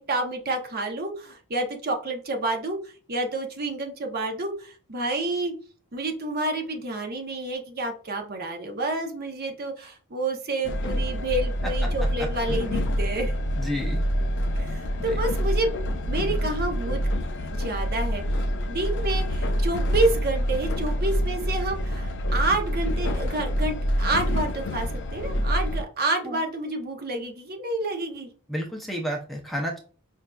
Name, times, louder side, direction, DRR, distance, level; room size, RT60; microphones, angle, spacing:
voice 1, 0.0-5.5 5.9-13.3 14.6-17.0 17.5-18.2 18.7-28.3, right 2 dB, 45° right, 3 dB, 0.8 m, -29 dB
Train, 10.6-25.8, equal, 55° left, 0.4 m, -26 dB
voice 2, 13.6-14.0 15.0-15.2 26.2-26.4 28.5-29.8, equal, ahead, 0 dB, 0.6 m, -31 dB
5.4 x 2.5 x 2.3 m, 0.38 s
head